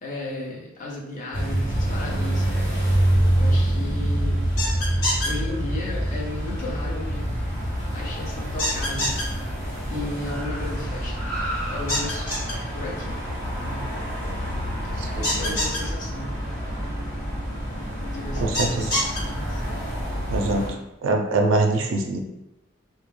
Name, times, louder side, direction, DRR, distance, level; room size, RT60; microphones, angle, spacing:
voice 1, 0.0-3.0 3.4-4.4 5.2-7.3 7.9-9.1 9.9-11.3 11.7-12.3 12.7-13.2 13.6-13.9 15.2-16.3 18.1-19.6, left 2 dB, 40° left, -4 dB, 0.6 m, -35 dB
sound 1, 1.3-20.7, right 1 dB, 80° left, 1.2 m, -27 dB
sound 2, 4.6-5.3 8.6-9.2 11.9-12.5 15.2-15.8 18.5-19.2, left 1 dB, 55° left, 1.2 m, -25 dB
Car, 6.0-14.9, right 1 dB, 5° left, 0.8 m, -40 dB
voice 2, 15.0-15.6 18.4-18.9 20.3-20.7 21.0-22.2, right 2 dB, 75° right, 2 dB, 0.3 m, -24 dB
2.2 x 2.1 x 3.1 m, 0.91 s
head